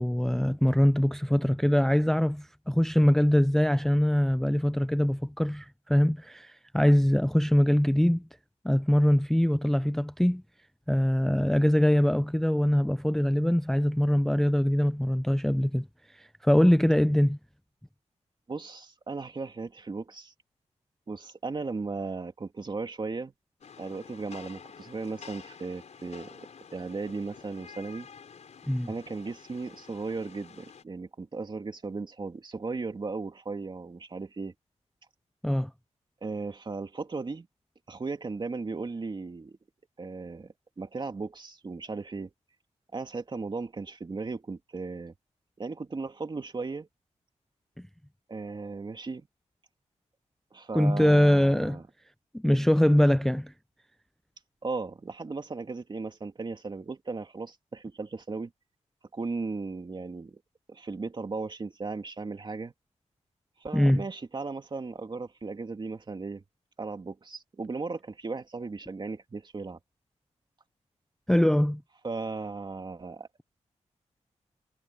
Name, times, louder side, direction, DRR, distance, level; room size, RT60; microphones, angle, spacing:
voice 1, 0.0-8.2 8.6-10.4 10.9-15.9 16.1-17.4 28.7-28.9 35.4-35.7 50.7-51.8 52.3-53.5 63.7-64.0 71.3-71.8, equal, 5° left, 0.5 m, -23 dB
voice 2, 18.5-20.3 21.1-23.3 23.8-28.1 28.9-34.5 36.2-37.5 37.9-39.6 40.0-42.3 42.9-45.1 45.6-46.9 48.3-49.3 50.5-51.8 54.6-58.5 59.1-60.4 60.7-62.7 63.6-66.4 66.8-69.8 72.0-73.3, right 4 dB, 40° right, 2.7 m, -36 dB
Rain, 23.6-30.8, left 6 dB, 70° left, 5.1 m, -49 dB
wide cardioid pair, 90°, 12 cm